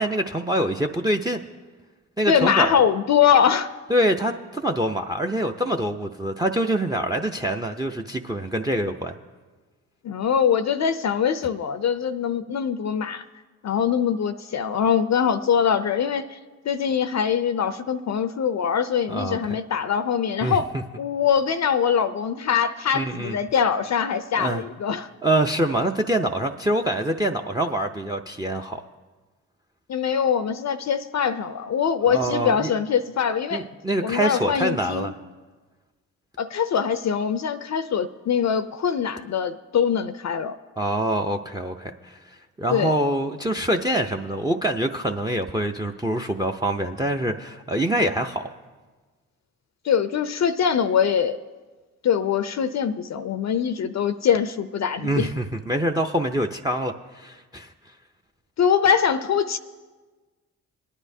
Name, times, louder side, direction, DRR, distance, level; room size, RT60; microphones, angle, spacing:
voice 1, 0.0-1.4 2.2-2.8 3.9-9.2 19.1-19.5 20.4-20.6 22.9-23.4 24.4-24.6 25.2-28.8 32.1-32.7 33.5-35.1 40.8-42.2 42.6-48.4 55.0-57.7, right 1 dB, 10° right, 7 dB, 0.5 m, -25 dB
voice 2, 2.3-3.7 10.0-13.2 13.6-16.4 16.7-20.7 21.0-25.1 29.9-33.6 34.0-35.1 36.4-40.5 42.7-42.9 49.8-51.4 52.0-55.3 58.6-59.6, left 7 dB, 50° left, 12 dB, 0.5 m, -23 dB
20.5 x 9.8 x 2.7 m, 1.3 s
supercardioid pair, 55°, 35 cm